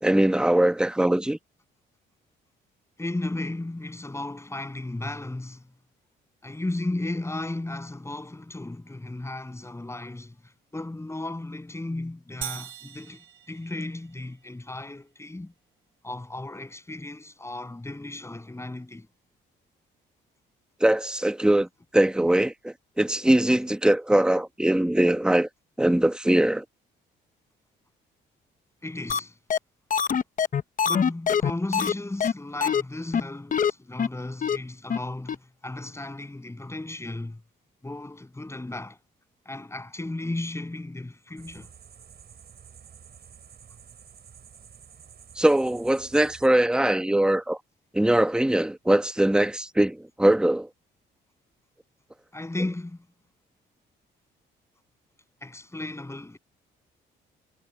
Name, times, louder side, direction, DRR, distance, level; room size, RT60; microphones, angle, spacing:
voice 1, 0.0-1.4 20.8-21.7 21.9-25.5 25.8-26.6 45.4-47.6 47.9-50.7, right 1 dB, 5° right, 1.3 m, -21 dB
voice 2, 3.0-5.6 6.4-15.5 16.0-19.1 28.8-29.3 30.9-37.4 37.8-39.0 39.4-41.7 52.3-53.1 55.4-56.4, left 2 dB, 15° left, 8.0 m, -35 dB
sound 1, 12.4-14.3, right 12 dB, 80° right, 2.5 m, -40 dB
sound 2, 29.1-29.2 29.5-29.6 29.9-31.9 32.2-32.3 32.6-32.8 33.1-33.2 33.5-33.7 34.0-34.1 34.4-34.6 34.9-35.0 35.3-35.4, left 7 dB, 40° left, 0.8 m, -23 dB
sound 3, 41.4-46.5, right 7 dB, 55° right, 6.9 m, -50 dB
cardioid pair, 90°, 20 cm